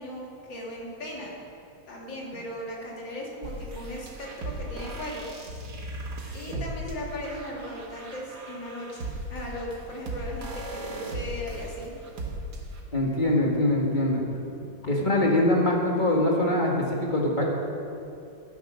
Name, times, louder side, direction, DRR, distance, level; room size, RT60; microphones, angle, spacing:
voice 1, 0.0-1.4 1.9-5.3 6.3-11.9, left 1 dB, 70° left, -3 dB, 3.1 m, -37 dB
sound 1, 3.4-12.8, right 2 dB, 60° right, 2.0 m, -37 dB
voice 2, 12.9-14.2 14.9-17.4, left 1 dB, 25° left, -1 dB, 1.8 m, -23 dB
12.0 x 9.6 x 6.3 m, 2.6 s
omnidirectional pair, 2.1 m